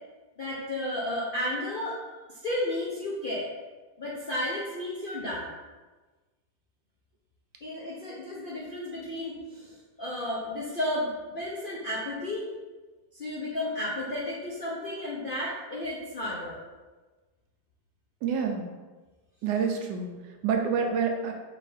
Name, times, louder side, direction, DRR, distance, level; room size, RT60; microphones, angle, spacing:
voice 1, 0.4-2.0 2.4-3.5 4.0-5.5 7.6-12.4 13.1-16.6, left 1 dB, 70° left, -6 dB, 0.5 m, -33 dB
voice 2, 18.2-18.7 19.4-21.3, right 6 dB, 85° right, 3 dB, 1.2 m, -28 dB
4.4 x 2.4 x 4.0 m, 1.3 s
omnidirectional pair, 1.8 m